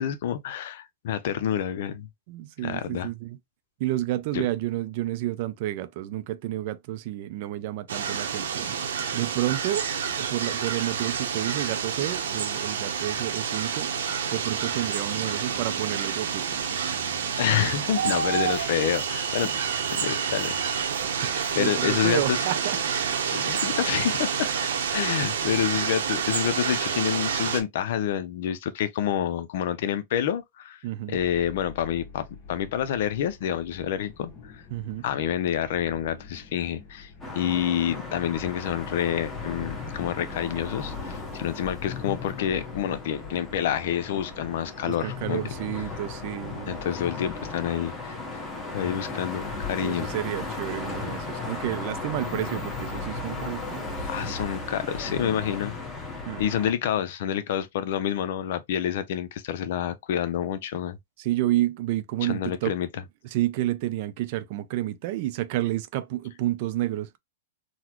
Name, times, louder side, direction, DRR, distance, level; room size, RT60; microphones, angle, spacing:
voice 1, 0.0-2.1 2.6-3.1 4.3-4.4 17.4-19.5 19.9-20.7 21.6-22.4 23.3-24.5 24.9-30.8 31.1-34.6 35.0-37.1 37.3-45.4 46.5-48.4 48.7-50.1 54.1-55.7 56.4-61.0 62.3-62.9, left 9 dB, 55° left, 0.6 m, -28 dB
voice 2, 2.3-3.4 3.8-8.8 9.1-9.9 10.2-13.9 14.3-16.6 17.2-17.3 21.2-22.8 30.8-31.2 34.7-35.0 44.9-46.8 49.8-54.3 56.3-56.4 61.2-62.7 63.3-67.2, right 14 dB, 40° right, 0.4 m, -30 dB
sound 1, 7.9-27.6, right 7 dB, 85° right, 0.9 m, -28 dB
sound 2, 31.1-45.0, left 4 dB, 35° left, 1.2 m, -47 dB
sound 3, 37.2-56.7, left 3 dB, 10° left, 1.1 m, -36 dB
3.9 x 2.2 x 3.0 m
hypercardioid pair, 160°, 0 cm